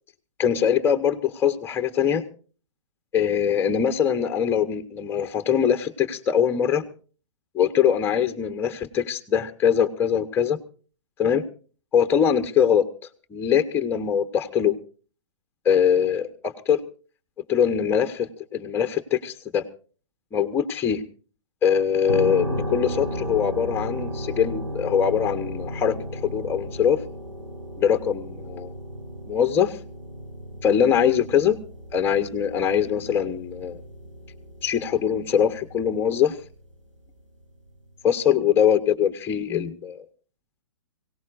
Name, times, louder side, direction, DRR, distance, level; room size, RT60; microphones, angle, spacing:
voice 1, 0.4-2.2 3.1-6.9 7.5-10.6 11.2-11.5 11.9-12.9 13.3-14.8 15.6-16.8 17.5-19.6 20.3-21.0 21.6-27.0 27.8-28.7 29.3-29.8 30.6-31.6 31.9-33.8 34.6-36.4 38.0-40.0, left 8 dB, 15° left, 8 dB, 1.0 m, -22 dB
sound 1, 22.1-36.7, equal, 80° right, 5.2 m, -35 dB
24.0 x 17.5 x 2.5 m, 0.38 s
hypercardioid pair, 130°, 16 cm